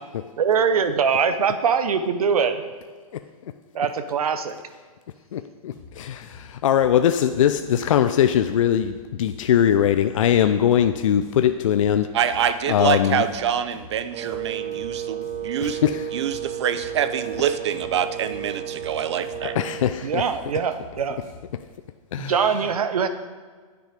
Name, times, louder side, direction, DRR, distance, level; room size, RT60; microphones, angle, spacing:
voice 1, 0.4-2.6 3.7-4.6 20.0-21.3 22.2-23.1, right 6 dB, 75° right, 10 dB, 0.9 m, -22 dB
voice 2, 3.1-3.5 5.3-12.1 12.7-13.3 15.6-16.1 19.5-20.2 22.1-22.3, left 10 dB, 60° left, 8 dB, 0.4 m, -21 dB
sound 1, 5.7-21.6, left 4 dB, 15° left, 1.4 m, -47 dB
voice 3, 12.1-15.8 16.1-19.6, right 8 dB, 50° right, 12 dB, 0.6 m, -25 dB
Wind instrument woodwind instrument, 14.1-19.9, right 10 dB, 25° right, 0.9 m, -33 dB
10.0 x 6.4 x 5.0 m, 1.5 s
hypercardioid pair, 170°, 19 cm